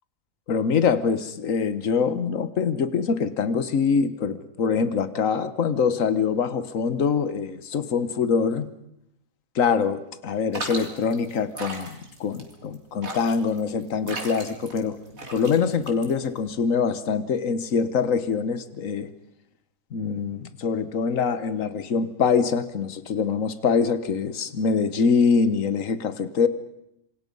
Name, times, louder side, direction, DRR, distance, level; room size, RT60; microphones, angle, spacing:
voice 1, 0.5-8.7 9.5-15.0 15.3-19.1 19.9-26.5, left 5 dB, 75° left, 13 dB, 1.6 m, -24 dB
sound 1, 10.5-16.5, right 2 dB, 85° right, 3.7 m, -37 dB
27.0 x 25.0 x 5.5 m, 0.80 s
omnidirectional pair, 1.4 m